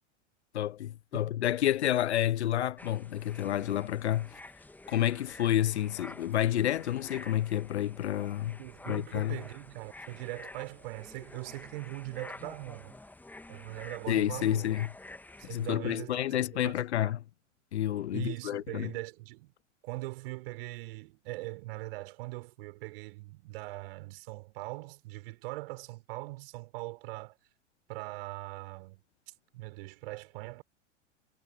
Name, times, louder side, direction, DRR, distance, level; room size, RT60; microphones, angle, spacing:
voice 1, 0.5-4.3 4.9-8.6 8.9-9.4 14.1-14.9 15.5-17.2 17.7-18.9, left 12 dB, 60° left, 1.1 m, -29 dB
sound 1, 2.8-15.7, left 2 dB, 5° left, 1.8 m, -49 dB
voice 2, 8.6-13.0 13.5-14.7 15.4-17.1 18.1-19.5 19.8-27.4 27.9-30.6, right 21 dB, 50° right, 6.5 m, -41 dB
figure-of-eight pair, 95°, 37 cm